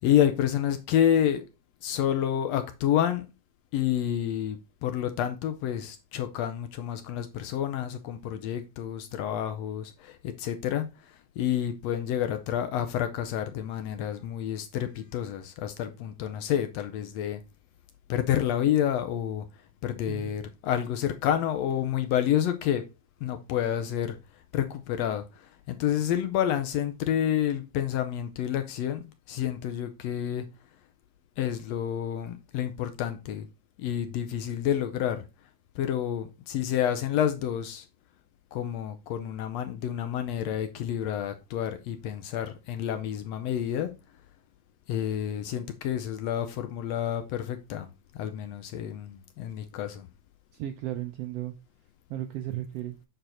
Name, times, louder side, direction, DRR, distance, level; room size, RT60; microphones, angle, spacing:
voice 1, 0.0-1.4 1.8-3.3 3.7-10.9 11.4-17.4 18.1-19.5 19.8-22.8 23.2-24.2 24.5-25.2 25.7-29.0 29.3-30.4 31.4-33.5 33.8-35.2 35.8-37.8 38.5-43.9 44.9-47.9 48.2-50.1, left 10 dB, 75° left, 1.6 m, -29 dB
voice 2, 50.5-51.5 52.1-52.9, right 13 dB, 80° right, 1.4 m, -35 dB
7.8 x 4.5 x 4.2 m
omnidirectional pair, 3.4 m